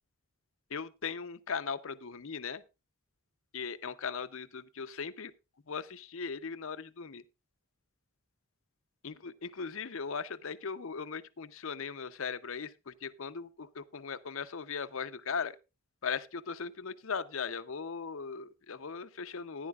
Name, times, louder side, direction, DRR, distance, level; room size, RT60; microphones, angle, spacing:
voice 1, 0.7-2.6 3.5-5.3 5.7-7.2 9.0-15.6 16.0-19.7, left 5 dB, 60° left, 0.7 m, -38 dB
15.0 x 10.5 x 2.4 m
head